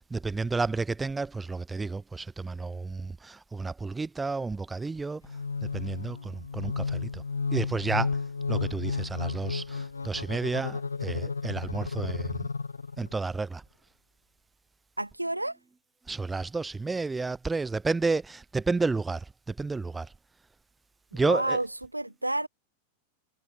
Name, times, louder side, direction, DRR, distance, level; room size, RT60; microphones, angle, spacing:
voice 1, 0.0-5.2 5.7-7.2 7.5-8.1 8.5-12.5 13.0-13.6 16.1-20.1 21.1-21.6, right 3 dB, 10° right, 0.6 m, -31 dB
sound 1, 5.3-13.2, left 4 dB, 75° left, 1.7 m, -33 dB
voice 2, 15.0-15.6 21.2-22.5, right 1 dB, 85° right, 0.7 m, -30 dB
figure-of-eight pair, 90°, 0 cm